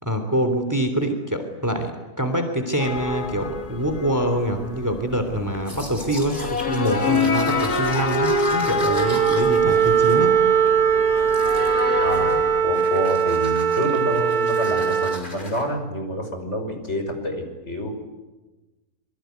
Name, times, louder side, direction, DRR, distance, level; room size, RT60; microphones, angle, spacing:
voice 1, 0.0-10.4, right 1 dB, 10° right, 7 dB, 3.1 m, -25 dB
sound 1, 2.8-12.6, left 3 dB, 85° left, 2.9 m, -26 dB
Domestic sounds home sounds, 5.5-10.8 11.2-11.8 12.1-12.5 12.7-15.6, left 1 dB, 30° left, 5.8 m, -38 dB
Wind instrument woodwind instrument, 8.9-15.2, right 8 dB, 30° right, 1.4 m, -20 dB
voice 2, 12.0-17.9, equal, 50° left, 5 dB, 5.9 m, -28 dB
26.5 x 24.0 x 9.4 m, 1.1 s
omnidirectional pair, 1.6 m